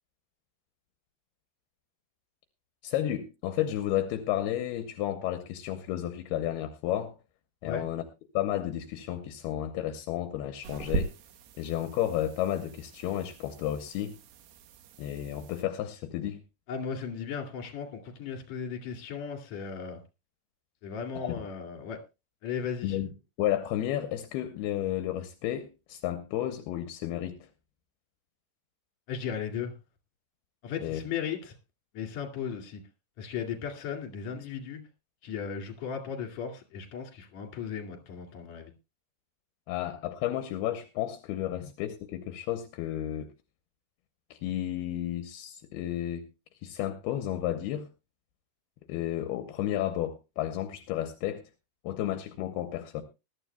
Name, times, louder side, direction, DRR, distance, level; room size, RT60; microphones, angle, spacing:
voice 1, 2.8-7.1 7.6-8.0 8.3-11.1 11.6-14.2 15.0-16.4 21.2-21.4 22.8-23.1 23.4-27.5 30.8-31.0 39.7-43.3 44.3-46.3 46.6-47.9 48.9-51.4 51.8-53.0, left 12 dB, 80° left, 8 dB, 2.7 m, -32 dB
sound 1, 10.6-15.6, right 4 dB, 85° right, 3.3 m, -39 dB
voice 2, 16.7-20.0 20.8-22.0 22.4-23.0 29.1-29.7 30.6-31.5 31.9-32.8 33.2-34.9 35.2-38.7 41.6-41.7, left 7 dB, 50° left, 2 dB, 3.1 m, -36 dB
20.5 x 12.0 x 2.2 m, 0.26 s
omnidirectional pair, 4.7 m